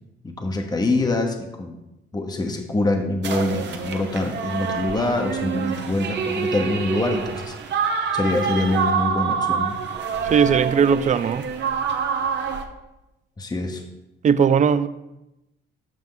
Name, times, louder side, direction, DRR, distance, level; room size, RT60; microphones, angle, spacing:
voice 1, 0.4-1.8 2.1-7.5 8.1-9.8 13.4-13.8, left 2 dB, 20° left, 4 dB, 0.9 m, -24 dB
sound 1, 3.2-12.6, right 6 dB, 65° right, 0.9 m, -26 dB
voice 2, 10.2-11.4 14.2-14.9, right 7 dB, 40° right, 15 dB, 0.4 m, -18 dB
7.7 x 5.9 x 3.9 m, 0.93 s
cardioid pair, 90°, 20 cm